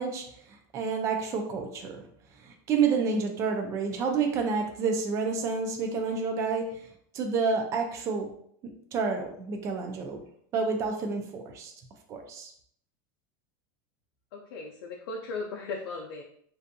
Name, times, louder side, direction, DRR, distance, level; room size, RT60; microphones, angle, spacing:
voice 1, 0.0-2.0 2.4-6.8 7.1-8.3 8.9-10.2 10.5-11.7 12.1-12.5, right 5 dB, 25° right, 4 dB, 0.4 m, -29 dB
voice 2, 14.3-16.2, left 3 dB, 90° left, 0 dB, 0.4 m, -37 dB
2.5 x 2.3 x 2.5 m, 0.66 s
supercardioid pair, 160°, 12 cm